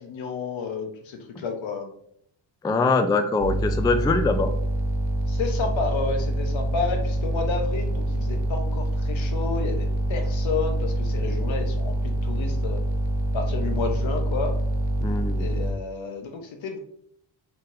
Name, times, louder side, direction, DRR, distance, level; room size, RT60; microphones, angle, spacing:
voice 1, 0.0-1.9 5.3-12.8 13.3-14.5 15.4-16.8, left 5 dB, 70° left, 5 dB, 1.0 m, -31 dB
voice 2, 2.6-4.5 15.0-15.5, left 3 dB, 10° left, 7 dB, 0.3 m, -23 dB
sound 1, 3.4-15.7, right 1 dB, 65° right, 0.7 m, -26 dB
4.0 x 4.0 x 2.6 m, 0.68 s
cardioid pair, 70°, 47 cm